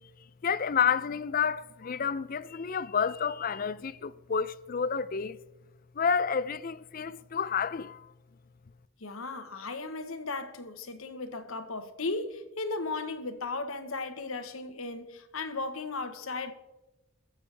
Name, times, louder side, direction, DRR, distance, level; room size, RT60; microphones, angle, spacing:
voice 1, 0.4-5.4 5.9-8.1, left 6 dB, 40° left, 0.4 m, -30 dB
voice 2, 9.0-16.5, left 3 dB, 70° left, 1.2 m, -36 dB
21.5 x 7.2 x 3.4 m
head